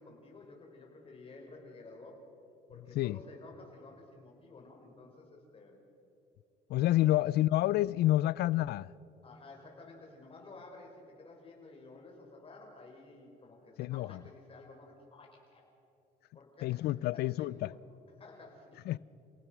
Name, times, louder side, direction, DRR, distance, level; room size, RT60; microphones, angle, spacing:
voice 1, 0.0-2.2 2.7-5.8 9.2-15.6 16.3-17.9 18.2-18.8, left 3 dB, 35° left, 6.3 m, -53 dB
voice 2, 6.7-8.9 13.8-14.2 16.6-17.7 18.9-19.0, left 15 dB, 70° left, 0.5 m, -29 dB
29.5 x 18.0 x 6.2 m
cardioid pair, 110°, 17 cm